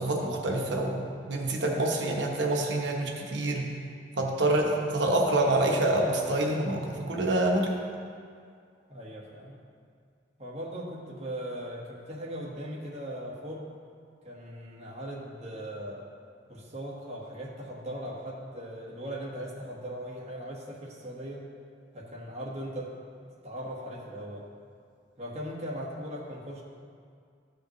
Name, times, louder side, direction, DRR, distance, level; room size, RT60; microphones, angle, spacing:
voice 1, 0.0-3.7 4.2-7.8, right 1 dB, 70° right, 1 dB, 1.0 m, -27 dB
voice 2, 8.9-9.6 10.4-13.7 14.2-16.1 16.5-21.4 21.9-22.9 23.4-24.5 25.2-26.6, equal, 35° right, -4 dB, 1.4 m, -39 dB
13.5 x 5.1 x 3.1 m, 2.2 s
head